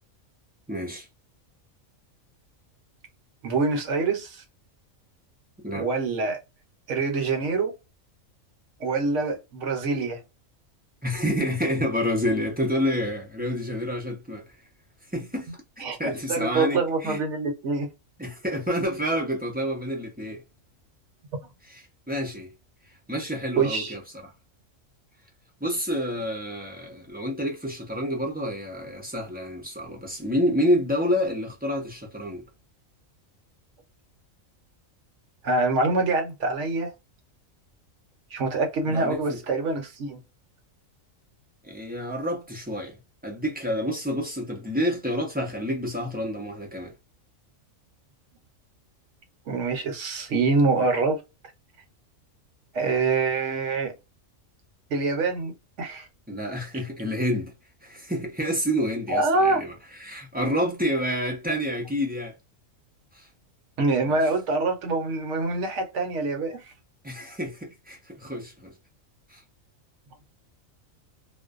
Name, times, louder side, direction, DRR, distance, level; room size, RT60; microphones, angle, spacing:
voice 1, 0.7-1.1 5.6-5.9 11.0-14.5 15.1-15.5 16.0-17.2 18.2-20.4 21.7-21.8 22.1-22.5 23.1-24.3 25.6-32.4 38.8-39.4 41.6-46.9 56.3-57.5 57.8-59.7 60.0-62.3 63.1-63.3 64.0-64.2 67.0-68.7 69.3-69.4, equal, 15° right, 0.4 m, -28 dB
voice 2, 3.4-4.4 5.7-6.4 6.9-7.7 8.8-10.2 15.8-16.0 16.3-17.9 21.4-21.5 23.6-23.9 35.4-36.9 38.3-40.2 49.5-51.2 52.7-53.9 54.9-56.1 59.1-59.6 63.8-66.7, right 3 dB, 65° right, 1.0 m, -25 dB
2.5 x 2.1 x 2.3 m
omnidirectional pair, 1.4 m